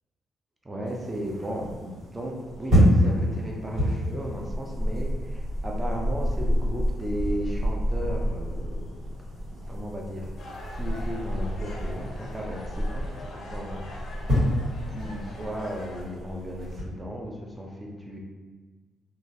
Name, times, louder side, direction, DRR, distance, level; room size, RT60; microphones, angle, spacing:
voice 1, 0.6-9.0 9.5-10.3 10.7-13.0 13.3-13.9 14.3-14.4 14.9-18.2, equal, 20° right, -1 dB, 0.5 m, -35 dB
sound 1, 0.8-16.8, equal, 70° right, 1.4 m, -28 dB
sound 2, 10.4-16.0, left 1 dB, 55° left, 0.5 m, -43 dB
2.9 x 2.4 x 2.6 m, 1.4 s
cardioid pair, 90°, 0 cm